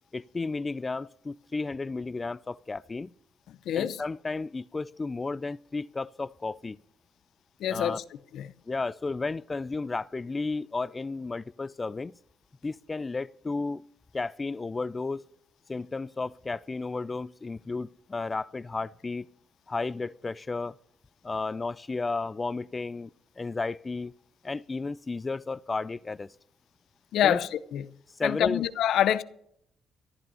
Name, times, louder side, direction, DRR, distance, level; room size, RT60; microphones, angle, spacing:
voice 1, 0.1-3.1 3.7-6.8 7.7-8.0 8.7-12.1 12.6-13.8 14.1-15.3 15.7-19.3 19.7-20.8 21.2-24.1 24.4-26.3 27.2-27.4 28.2-28.6, left 3 dB, 25° left, 0.4 m, -33 dB
voice 2, 3.5-4.0 7.6-8.0 8.3-8.5 27.1-27.8 28.2-29.2, left 10 dB, 75° left, 0.7 m, -26 dB
14.0 x 11.5 x 5.5 m
cardioid pair, 90°, 0 cm